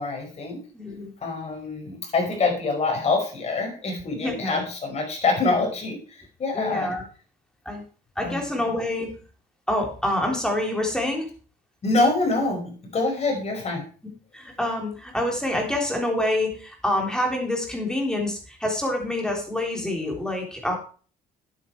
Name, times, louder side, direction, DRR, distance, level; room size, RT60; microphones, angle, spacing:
voice 1, 0.0-0.6 1.2-6.9 8.2-8.4 11.8-13.8, left 3 dB, 40° left, 2 dB, 5.1 m, -25 dB
voice 2, 0.7-1.1 4.1-4.6 6.5-7.0 7.7-7.8 8.2-9.1 9.7-11.3 14.3-20.8, left 1 dB, 5° left, 1 dB, 3.6 m, -27 dB
9.7 x 8.9 x 4.6 m, 0.40 s
cardioid pair, 110°, 17 cm